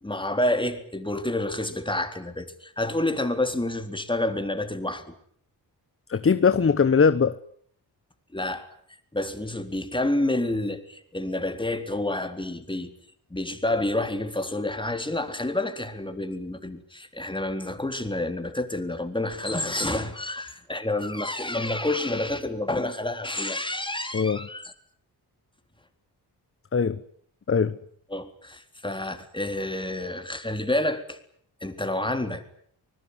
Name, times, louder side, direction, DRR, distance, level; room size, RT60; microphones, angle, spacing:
voice 1, 0.0-5.1 8.3-8.7 9.1-12.9 13.3-24.7 28.1-31.2 31.6-32.4, left 1 dB, 10° left, 3.9 m, -29 dB
voice 2, 6.1-7.4 24.1-24.4 26.7-27.0 27.5-27.7, left 5 dB, 35° left, 1.1 m, -20 dB
25.0 x 20.5 x 9.8 m
cardioid pair, 85°, 40 cm